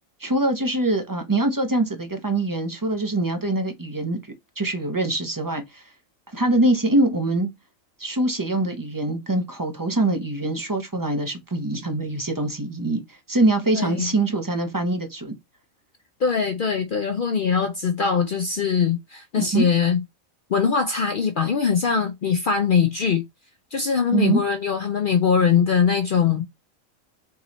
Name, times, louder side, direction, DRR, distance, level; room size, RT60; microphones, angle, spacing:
voice 1, 0.2-4.2 4.6-5.8 6.3-7.5 8.0-15.4 19.4-19.7 24.1-24.4, right 2 dB, 20° right, 0.6 m, -23 dB
voice 2, 13.7-14.1 16.2-20.0 20.5-23.2 23.7-26.4, left 6 dB, 60° left, 0.5 m, -22 dB
3.8 x 3.0 x 4.0 m
omnidirectional pair, 1.4 m